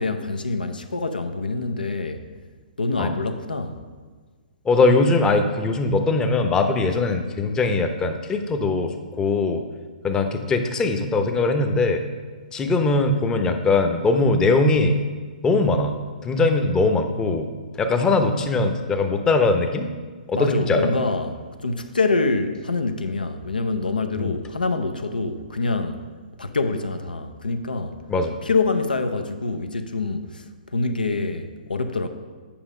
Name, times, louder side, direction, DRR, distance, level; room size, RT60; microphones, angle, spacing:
voice 1, 0.0-2.2 2.8-3.8 20.3-21.3 21.6-26.0 26.4-28.0 28.4-32.1, left 3 dB, 85° left, 7 dB, 0.7 m, -25 dB
voice 2, 4.6-9.6 10.0-12.0 12.5-15.0 15.4-17.5 17.8-19.9 20.3-20.9 24.2-24.3 28.1-28.4, left 3 dB, 15° left, 6 dB, 0.7 m, -21 dB
8.8 x 5.6 x 4.9 m, 1.5 s
figure-of-eight pair, 125°, 5 cm